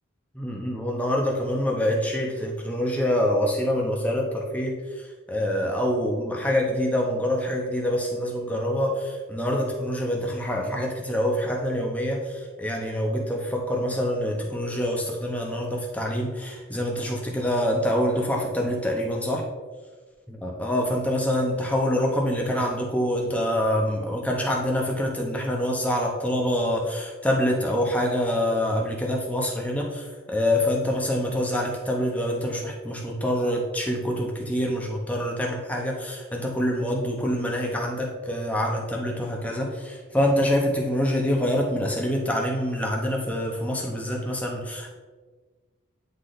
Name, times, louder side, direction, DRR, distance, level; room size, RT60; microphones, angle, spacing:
voice 1, 0.3-19.4 20.3-44.9, equal, 5° left, -1 dB, 0.9 m, -26 dB
9.4 x 4.0 x 3.2 m, 1.4 s
head